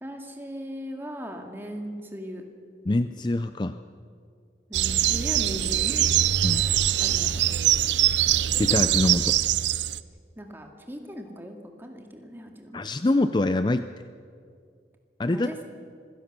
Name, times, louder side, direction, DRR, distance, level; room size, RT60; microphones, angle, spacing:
voice 1, 0.0-2.4 4.7-6.1 7.0-7.6 10.4-12.8 15.3-15.6, equal, 10° right, 3 dB, 2.2 m, -38 dB
voice 2, 2.9-3.8 6.4-6.6 8.6-9.4 12.7-13.8 15.2-15.6, left 2 dB, 25° left, 11 dB, 0.4 m, -25 dB
sound 1, 4.7-10.0, right 11 dB, 85° right, 0.6 m, -23 dB
26.0 x 16.5 x 6.8 m, 2.3 s
head